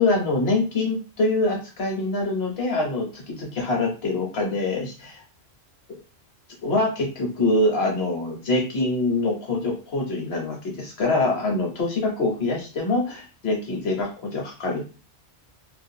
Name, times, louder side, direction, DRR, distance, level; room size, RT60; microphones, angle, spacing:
voice 1, 0.0-5.2 6.6-14.9, left 2 dB, 65° left, 0 dB, 1.0 m, -24 dB
2.4 x 2.2 x 2.6 m, 0.34 s
omnidirectional pair, 1.2 m